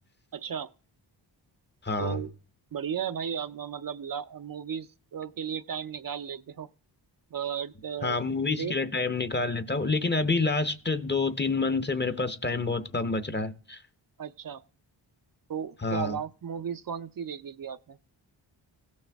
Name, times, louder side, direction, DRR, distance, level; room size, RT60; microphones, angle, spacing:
voice 1, 0.3-0.7 2.0-2.3 2.7-6.7 7.3-8.2 8.5-8.7 14.2-14.7 15.5-18.0, right 7 dB, 50° right, 0.6 m, -35 dB
voice 2, 1.8-2.2 8.0-13.8 15.8-16.2, left 3 dB, 25° left, 0.8 m, -28 dB
17.0 x 6.3 x 3.4 m
wide cardioid pair, 105°, 44 cm